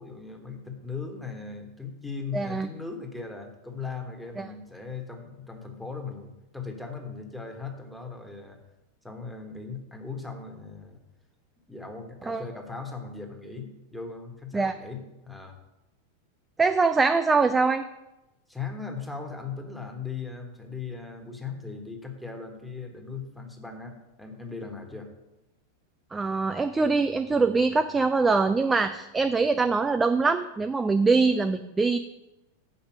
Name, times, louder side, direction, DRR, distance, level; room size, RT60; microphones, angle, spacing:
voice 1, 0.0-8.6 9.0-11.0 11.7-15.6 18.5-25.1 28.7-28.8, left 4 dB, ahead, 2 dB, 1.4 m, -38 dB
voice 2, 2.3-2.7 4.4-4.5 12.3-12.4 14.5-14.7 16.6-17.8 26.1-32.0, right 4 dB, 15° right, 9 dB, 0.4 m, -23 dB
7.0 x 5.0 x 7.0 m, 0.97 s
figure-of-eight pair, 90°, 0 cm